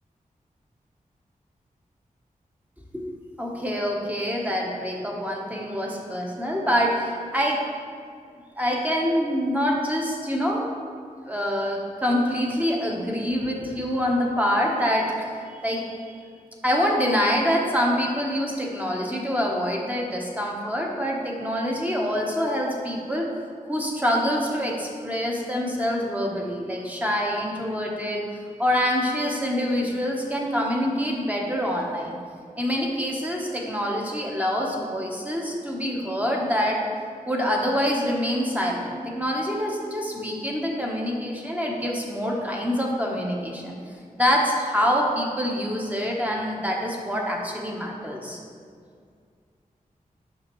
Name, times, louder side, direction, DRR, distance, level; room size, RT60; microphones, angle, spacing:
voice 1, 3.4-7.6 8.6-10.7 11.3-16.2 16.6-23.3 23.7-28.2 28.6-32.2 32.6-36.8 37.3-43.8 44.2-48.4, equal, 10° right, -1 dB, 1.1 m, -25 dB
6.0 x 5.1 x 3.1 m, 2.2 s
cardioid pair, 45°, 15 cm